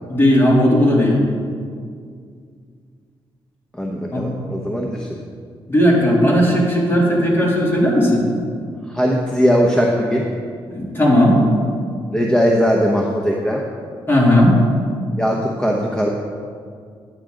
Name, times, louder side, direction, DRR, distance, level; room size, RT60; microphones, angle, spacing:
voice 1, 0.1-1.2 4.1-4.2 5.7-8.2 10.7-11.4 14.1-14.6, equal, 25° left, -4 dB, 2.9 m, -15 dB
voice 2, 3.7-5.1 8.9-10.3 12.1-13.6 15.2-16.1, equal, 10° left, -1 dB, 1.0 m, -19 dB
11.0 x 9.1 x 3.8 m, 2.1 s
cardioid pair, 95°, 9 cm